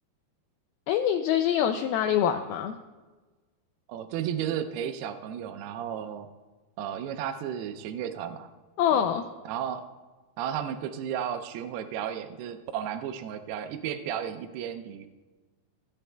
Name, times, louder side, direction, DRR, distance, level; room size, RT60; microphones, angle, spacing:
voice 1, 0.9-2.8 8.8-9.2, left 9 dB, 85° left, 7 dB, 2.2 m, -25 dB
voice 2, 3.9-6.3 6.8-8.5 8.9-9.1 9.5-9.8 10.4-15.1, right 9 dB, 80° right, 6 dB, 2.5 m, -33 dB
25.5 x 10.0 x 2.3 m, 1.3 s
omnidirectional pair, 4.7 m